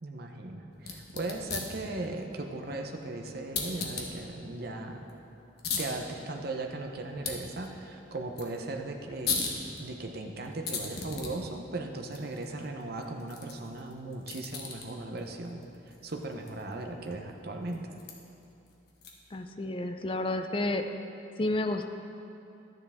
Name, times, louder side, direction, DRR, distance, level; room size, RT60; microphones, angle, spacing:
voice 1, 0.0-5.0 5.8-9.5 9.8-17.8, right 2 dB, 50° right, 3 dB, 0.8 m, -38 dB
sound 1, 0.7-19.4, left 4 dB, 55° left, 1.2 m, -40 dB
voice 2, 19.3-20.8 21.4-21.8, left 2 dB, 25° left, 6 dB, 0.4 m, -30 dB
11.5 x 9.8 x 3.6 m, 2.8 s
head